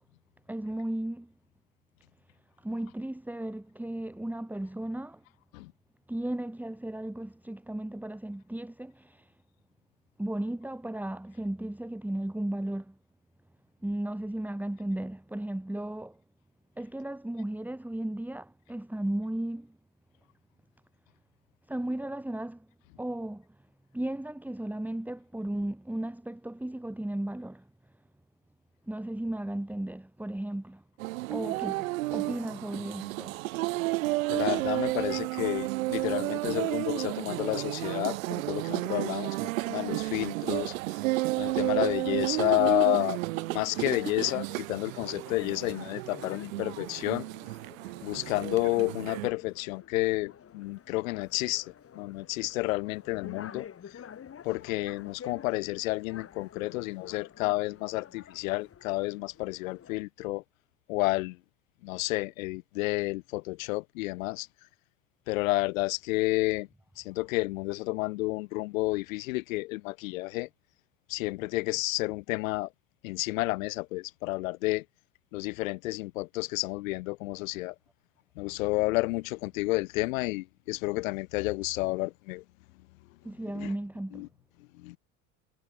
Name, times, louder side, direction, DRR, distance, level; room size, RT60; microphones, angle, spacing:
voice 1, 0.5-1.3 2.6-5.2 6.1-9.3 10.2-13.0 13.8-16.2 16.8-19.8 21.7-22.7 23.0-23.5 23.9-27.7 28.9-30.8 31.3-33.4 83.2-84.3, right 1 dB, 5° right, 2.5 m, -35 dB
sound 1, 31.0-49.3, right 20 dB, 80° right, 1.6 m, -32 dB
voice 2, 34.3-40.7 41.4-43.2 43.5-47.2 48.0-51.7 51.9-53.7 54.4-60.4 60.9-61.4 61.8-64.5 65.3-66.7 67.0-70.5 71.1-72.7 73.0-74.8 75.3-77.7 78.4-82.4 83.5-83.7 84.1-84.3 84.8-85.0, left 21 dB, 80° left, 2.6 m, -30 dB
sound 2, 43.4-60.0, left 8 dB, 35° left, 3.8 m, -49 dB
hypercardioid pair, 90°, 40 cm